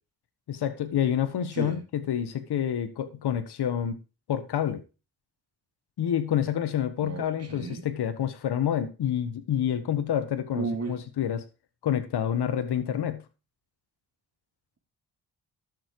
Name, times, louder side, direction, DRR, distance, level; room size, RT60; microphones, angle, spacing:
voice 1, 0.5-4.0 4.3-4.8 6.0-11.4 11.8-13.2, left 9 dB, 80° left, 1.4 m, -28 dB
voice 2, 7.0-7.8 10.5-10.9, right 4 dB, 40° right, 3.1 m, -33 dB
12.0 x 7.2 x 4.7 m
cardioid pair, 75°, 39 cm